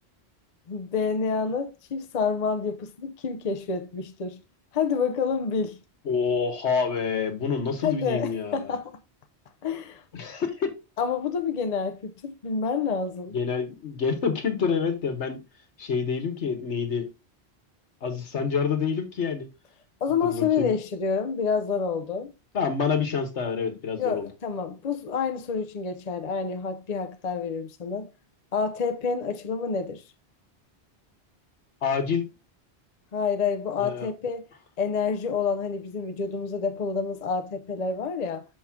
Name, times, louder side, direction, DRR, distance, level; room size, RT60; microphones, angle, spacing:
voice 1, 0.7-4.4 4.7-5.8 7.8-8.9 9.6-10.0 11.0-13.4 20.0-22.3 24.0-28.1 28.5-30.0 33.1-34.5 34.8-38.5, left 5 dB, 45° left, 0.7 m, -28 dB
voice 2, 6.0-8.7 10.1-10.7 13.3-15.4 15.8-17.1 18.0-19.5 20.3-20.7 22.5-24.3 31.8-32.2 33.8-34.1, left 6 dB, 80° left, 1.5 m, -27 dB
6.0 x 5.5 x 3.6 m
omnidirectional pair, 1.1 m